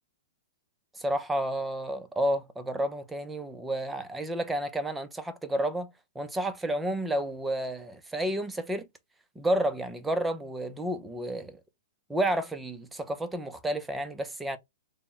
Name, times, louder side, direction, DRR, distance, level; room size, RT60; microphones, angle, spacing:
voice 1, 1.0-5.9 6.2-8.9 9.4-11.6 12.1-14.6, right 1 dB, 5° right, 0.5 m, -31 dB
3.4 x 2.1 x 4.1 m
hypercardioid pair, 135°, 0 cm